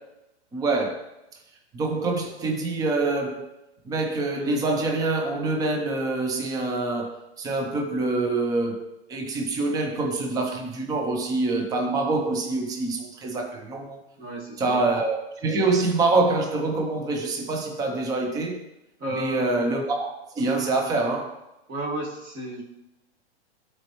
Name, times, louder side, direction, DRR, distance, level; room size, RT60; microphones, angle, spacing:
voice 1, 0.5-1.1 1.7-3.5 3.8-14.0 14.6-18.6 19.1-20.1 20.4-21.4, right 3 dB, 10° right, 0.6 m, -25 dB
voice 2, 14.2-14.8 19.0-19.4 21.7-22.6, right 1 dB, 25° right, 1.9 m, -32 dB
12.5 x 4.4 x 3.0 m
hypercardioid pair, 145°, 34 cm